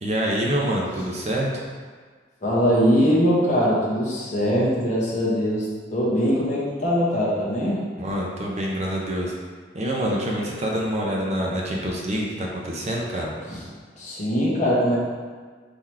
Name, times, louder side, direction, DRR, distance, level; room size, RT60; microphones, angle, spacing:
voice 1, 0.0-1.7 8.0-9.3 9.7-13.3, equal, 40° right, -2 dB, 0.6 m, -26 dB
voice 2, 2.4-7.8 13.5-13.6 14.0-15.0, equal, 40° left, -6 dB, 1.1 m, -22 dB
3.8 x 2.9 x 4.6 m, 1.5 s
head